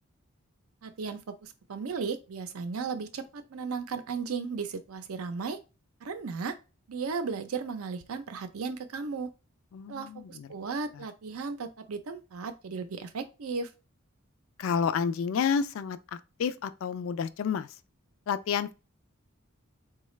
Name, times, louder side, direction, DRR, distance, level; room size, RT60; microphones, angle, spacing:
voice 1, 0.8-5.6 6.0-6.6 6.9-9.3 9.9-13.7, right 5 dB, 85° right, 0.5 m, -35 dB
voice 2, 9.7-10.5 10.9-11.0 14.6-17.7 18.3-18.7, left 6 dB, 65° left, 0.3 m, -30 dB
3.9 x 2.3 x 3.1 m
head